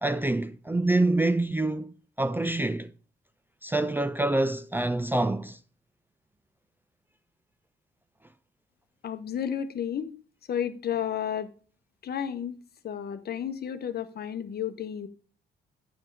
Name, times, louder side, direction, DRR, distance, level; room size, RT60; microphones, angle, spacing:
voice 1, 0.0-2.9 3.6-5.6, right 2 dB, 10° right, 0.4 m, -26 dB
voice 2, 9.0-10.1 10.5-11.5 12.0-12.5 12.8-15.1, left 9 dB, 55° left, 0.9 m, -32 dB
9.0 x 5.5 x 3.2 m
cardioid pair, 90°, 20 cm